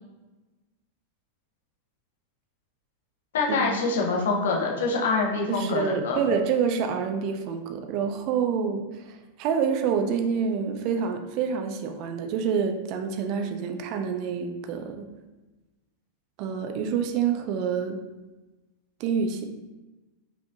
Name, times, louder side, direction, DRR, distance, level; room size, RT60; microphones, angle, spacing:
voice 1, 3.3-6.2, left 4 dB, 60° left, -1 dB, 0.8 m, -25 dB
voice 2, 5.5-9.1 9.4-15.1 16.4-18.0 19.0-19.4, right 6 dB, 40° right, 6 dB, 0.4 m, -27 dB
5.0 x 2.7 x 2.3 m, 1.1 s
figure-of-eight pair, 90°, 0 cm